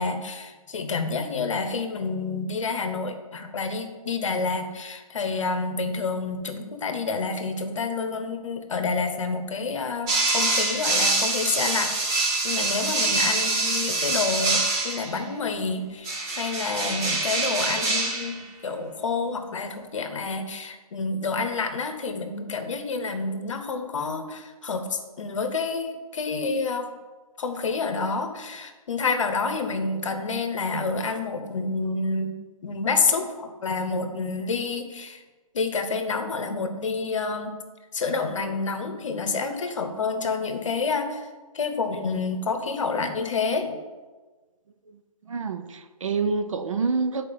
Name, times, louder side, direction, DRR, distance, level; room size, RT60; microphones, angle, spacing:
voice 1, 0.0-26.9 27.4-32.3 32.6-35.2 35.5-37.5 37.9-41.3 41.5-43.8, left 4 dB, 55° left, 7 dB, 1.0 m, -28 dB
sound 1, 10.1-15.2 16.0-18.4, right 3 dB, 10° right, 0.4 m, -25 dB
voice 2, 45.3-47.3, right 4 dB, 55° right, 9 dB, 0.7 m, -27 dB
8.3 x 4.6 x 5.1 m, 1.3 s
hypercardioid pair, 155°, 19 cm